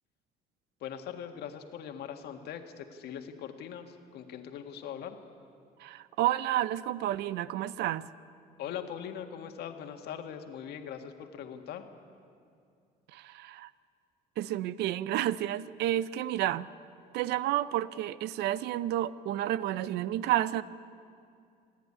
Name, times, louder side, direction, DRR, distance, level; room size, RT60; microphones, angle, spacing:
voice 1, 0.8-5.2 8.6-11.9, left 8 dB, 75° left, 6 dB, 1.7 m, -41 dB
voice 2, 5.8-8.1 13.1-13.7 14.4-16.7 17.1-20.6, right 13 dB, 80° right, 17 dB, 0.6 m, -30 dB
28.0 x 10.5 x 9.9 m, 2.4 s
cardioid pair, 110°, 17 cm